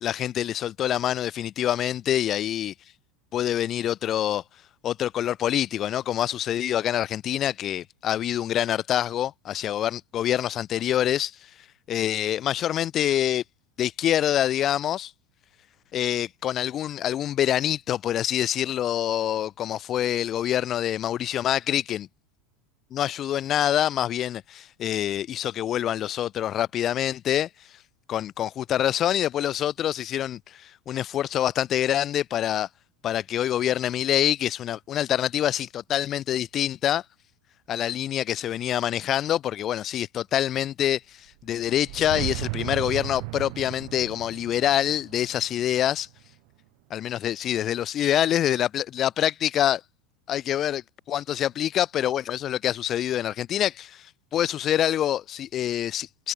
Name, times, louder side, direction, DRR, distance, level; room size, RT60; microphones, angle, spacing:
voice 1, 0.0-2.7 3.3-4.4 4.8-11.3 11.9-13.4 13.8-15.1 15.9-22.0 22.9-27.5 28.1-32.7 33.0-37.0 37.7-41.0 41.4-46.1 46.9-49.8 50.3-50.8 51.1-54.1 54.3-56.3, left 11 dB, 30° left, 1.4 m, -26 dB
sound 1, 41.3-46.5, right 35 dB, 55° right, 2.2 m, -36 dB
supercardioid pair, 160°, 0 cm